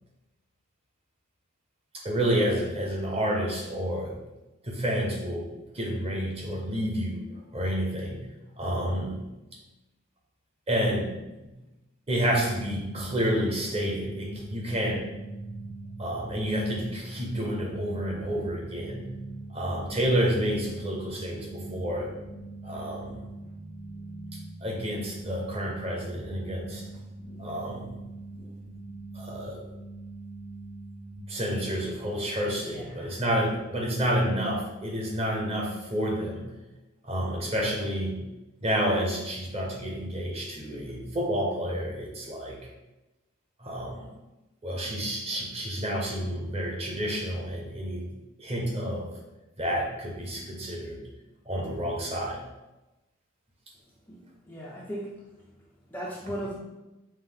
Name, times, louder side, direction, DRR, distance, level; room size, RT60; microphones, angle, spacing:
voice 1, 1.9-4.2 4.6-5.5 5.7-7.2 7.5-8.3 8.6-9.2 10.7-11.1 11.4-11.5 12.1-15.1 16.0-19.0 19.5-22.1 22.6-23.2 24.6-26.8 27.4-27.9 29.1-29.6 31.3-36.5 37.0-38.2 38.6-42.6 43.6-44.1 44.6-48.1 48.4-49.2 49.6-51.0 51.5-52.4, equal, 30° right, -2 dB, 0.8 m, -29 dB
sound 1, 12.3-31.2, right 2 dB, 55° right, 1.5 m, -42 dB
voice 2, 32.6-33.2 54.1-55.3 55.9-56.5, equal, 10° left, -4 dB, 0.3 m, -38 dB
5.4 x 2.1 x 3.5 m, 1.0 s
head